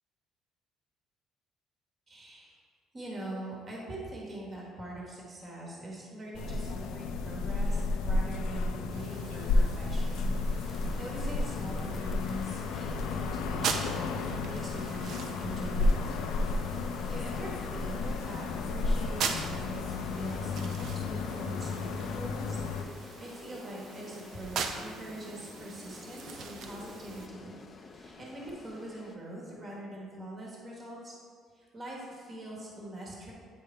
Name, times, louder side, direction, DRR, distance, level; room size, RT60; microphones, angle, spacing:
voice 1, 2.1-2.5 2.9-10.3 11.0-16.3 16.9-22.6 22.9-27.6 27.9-31.2 31.5-33.3, right 1 dB, 25° right, -4 dB, 1.2 m, -43 dB
sound 1, 6.3-22.8, left 3 dB, 85° left, 0.4 m, -32 dB
sound 2, 8.9-27.3, right 5 dB, 50° right, 0.5 m, -42 dB
sound 3, 10.5-29.2, left 3 dB, 25° left, 0.5 m, -49 dB
9.1 x 3.4 x 4.3 m, 2.1 s
cardioid pair, 165°, 0 cm